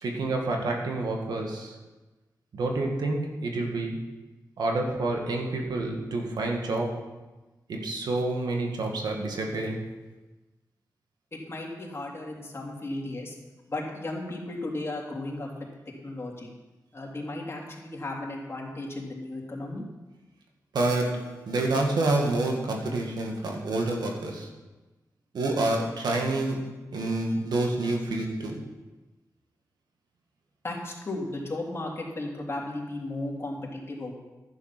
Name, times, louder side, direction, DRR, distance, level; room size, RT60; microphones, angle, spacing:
voice 1, 0.0-1.8 2.5-4.1 4.6-7.2 7.7-10.0 20.7-24.6 25.3-28.7, right 2 dB, 85° right, 1 dB, 1.9 m, -28 dB
voice 2, 11.3-13.3 13.7-15.5 16.0-16.5 16.9-19.8 30.6-34.1, left 2 dB, 35° left, -1 dB, 3.2 m, -35 dB
11.0 x 9.6 x 5.9 m, 1.1 s
cardioid pair, 65°, 7 cm